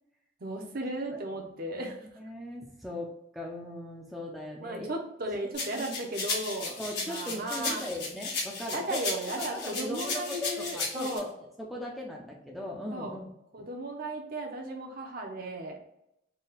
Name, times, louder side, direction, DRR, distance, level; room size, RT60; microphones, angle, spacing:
voice 1, 0.4-2.0 4.6-6.8 7.0-7.9 8.7-11.3 12.9-13.2 13.5-15.8, right 1 dB, 50° right, 2 dB, 0.7 m, -35 dB
voice 2, 2.2-4.9 5.7-6.0 6.8-9.0 9.3-11.3 11.6-13.3, left 1 dB, ahead, -2 dB, 0.5 m, -39 dB
sound 1, 5.5-11.2, left 3 dB, 60° left, 1.2 m, -35 dB
4.0 x 2.3 x 3.9 m, 0.81 s
head